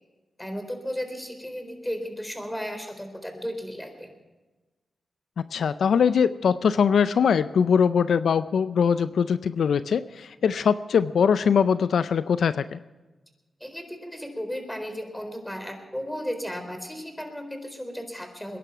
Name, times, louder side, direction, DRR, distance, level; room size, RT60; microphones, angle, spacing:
voice 1, 0.4-4.1 13.6-18.6, equal, 5° left, 5 dB, 4.1 m, -34 dB
voice 2, 5.5-12.8, left 6 dB, 80° left, 13 dB, 0.4 m, -22 dB
21.5 x 11.0 x 5.8 m, 1.2 s
cardioid pair, 55°, 0 cm